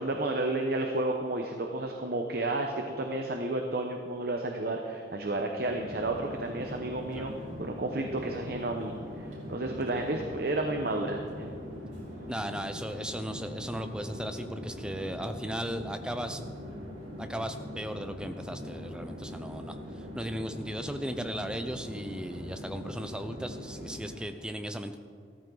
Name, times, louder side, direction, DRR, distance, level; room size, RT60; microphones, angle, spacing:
voice 1, 0.0-7.3 7.6-11.5, right 2 dB, 55° right, 3 dB, 0.9 m, -32 dB
Chatter / Fixed-wing aircraft airplane, 5.5-24.4, left 1 dB, 90° right, 3.6 m, -42 dB
voice 2, 12.3-16.4 17.2-25.0, equal, 5° right, 8 dB, 0.6 m, -36 dB
14.0 x 13.5 x 4.0 m, 2.1 s
head